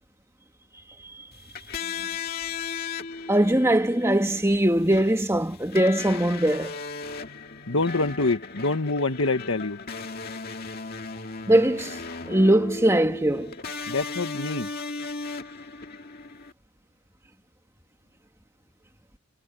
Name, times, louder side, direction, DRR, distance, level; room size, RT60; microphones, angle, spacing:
sound 1, 1.3-16.5, left 4 dB, 45° left, 2.4 m, -36 dB
voice 1, 3.3-6.8 11.5-12.0 12.3-13.5, right 1 dB, 10° right, 2.0 m, -21 dB
voice 2, 7.7-9.8 13.9-14.7, left 3 dB, 65° left, 1.3 m, -26 dB
head